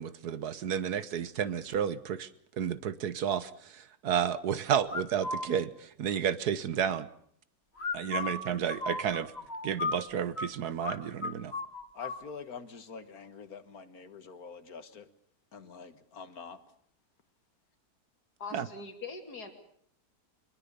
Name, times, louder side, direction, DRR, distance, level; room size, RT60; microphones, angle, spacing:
voice 1, 0.0-2.3 2.6-7.1 7.9-9.3 9.6-11.5 18.5-18.7, right 8 dB, 80° right, 15 dB, 1.7 m, -31 dB
sound 1, 4.9-5.5 7.8-10.5 10.8-11.0 11.2-12.2, left 4 dB, 40° left, 2.5 m, -35 dB
voice 2, 11.9-15.1 15.5-16.6, left 5 dB, 70° left, 11 dB, 2.0 m, -45 dB
voice 3, 18.4-19.5, left 4 dB, 85° left, 5 dB, 3.3 m, -42 dB
23.5 x 21.5 x 6.9 m, 0.67 s
omnidirectional pair, 1.6 m